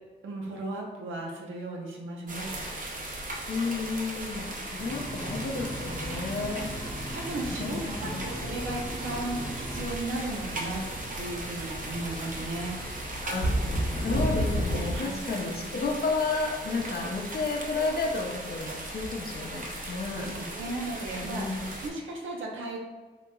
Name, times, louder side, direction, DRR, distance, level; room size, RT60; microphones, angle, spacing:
voice 1, 0.2-2.5 6.0-6.4 7.1-10.8 11.2-12.7 14.9-15.2 20.2-21.4 21.8-22.8, right 2 dB, 85° right, -1 dB, 0.7 m, -36 dB
sound 1, 2.3-21.9, right 1 dB, 45° right, 0.7 m, -38 dB
voice 2, 3.5-6.7 7.0-7.2 7.5-8.2 13.2-13.6 13.9-20.3 21.3-21.6, left 3 dB, 50° left, 1 dB, 0.6 m, -32 dB
sound 2, 4.8-9.9, equal, 5° right, 0.4 m, -39 dB
sound 3, 5.4-15.0, equal, 90° left, 0.8 m, -35 dB
3.8 x 2.9 x 2.3 m, 1.3 s
cardioid pair, 70°, 20 cm